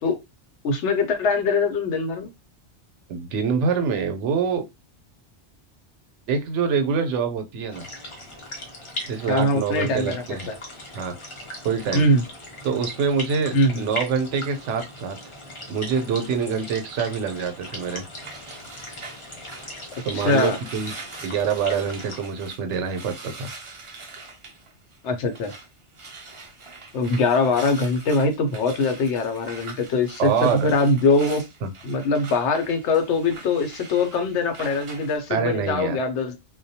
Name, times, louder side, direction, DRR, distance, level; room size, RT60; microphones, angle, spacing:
voice 1, 0.6-2.3 9.3-10.5 11.9-12.2 13.5-13.9 20.1-20.6 25.0-25.5 26.9-31.4 31.8-36.4, left 3 dB, 75° left, 6 dB, 0.9 m, -22 dB
voice 2, 3.1-4.6 6.3-7.9 9.1-10.5 10.9-11.2 11.6-12.0 12.6-15.2 15.7-18.0 20.1-20.9 21.2-23.5 30.2-30.7 31.6-31.7 35.3-36.0, right 6 dB, 80° right, 7 dB, 0.9 m, -25 dB
sound 1, 7.7-22.3, left 1 dB, 35° left, 0.5 m, -39 dB
sound 2, 17.7-25.7 25.9-35.2, right 3 dB, 50° right, 0.4 m, -43 dB
2.2 x 2.1 x 2.7 m, 0.22 s
omnidirectional pair, 1.2 m